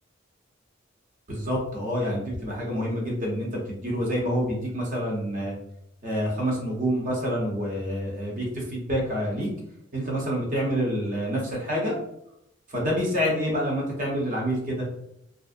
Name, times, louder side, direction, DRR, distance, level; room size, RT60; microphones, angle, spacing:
voice 1, 1.3-5.6 6.0-9.5 9.9-12.0 12.7-14.9, equal, 45° right, -2 dB, 0.8 m, -27 dB
2.5 x 2.0 x 2.5 m, 0.78 s
head